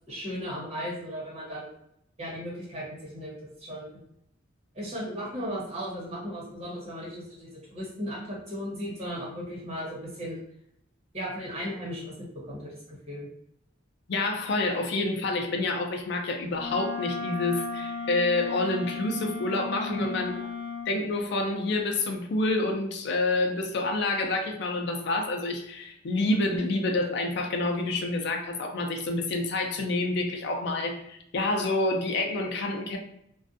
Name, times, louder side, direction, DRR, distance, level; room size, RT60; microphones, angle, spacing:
voice 1, 0.1-1.7 2.2-4.0 4.7-10.4 11.1-13.3 19.9-20.0, equal, 35° right, -6 dB, 1.1 m, -36 dB
voice 2, 14.1-20.3 20.9-33.0, left 2 dB, 60° left, 3 dB, 0.4 m, -28 dB
Wind instrument woodwind instrument, 16.5-20.9, left 5 dB, 10° right, 0.5 m, -35 dB
2.5 x 2.3 x 2.5 m, 0.74 s
head